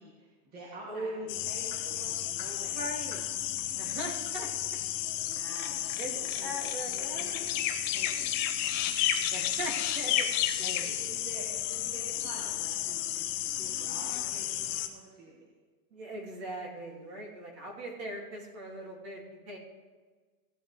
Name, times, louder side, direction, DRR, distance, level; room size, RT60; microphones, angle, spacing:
voice 1, 0.0-2.9 5.2-7.5 7.9-8.3 10.6-15.4, right 2 dB, 20° right, -4 dB, 2.0 m, -48 dB
voice 2, 0.9-1.4 2.7-3.2 3.8-4.5 6.0-7.5 9.3-10.3 10.6-10.9 15.9-19.6, right 1 dB, 45° right, -1 dB, 3.0 m, -40 dB
sound 1, 1.3-14.9, left 11 dB, 25° left, 0.7 m, -32 dB
16.0 x 11.0 x 3.5 m, 1.4 s
supercardioid pair, 165°, 44 cm